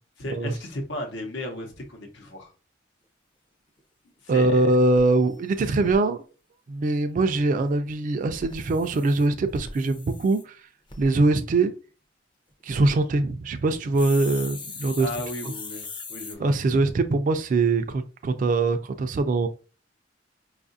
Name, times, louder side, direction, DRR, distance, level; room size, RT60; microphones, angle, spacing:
voice 1, 0.2-2.5 4.2-4.7 15.0-16.5, left 1 dB, 85° left, 0.9 m, -35 dB
sound 1, 3.8-3.9 4.3-4.4 4.6-4.7 4.9-6.0 8.2-10.4 10.9-11.1 12.5-12.9 13.9-16.3, left 3 dB, 25° left, 0.5 m, -40 dB
voice 2, 4.3-6.2 6.7-10.6 11.0-11.7 12.6-15.1 16.4-19.5, right 2 dB, 45° right, 0.3 m, -22 dB
4.7 x 2.4 x 2.5 m
head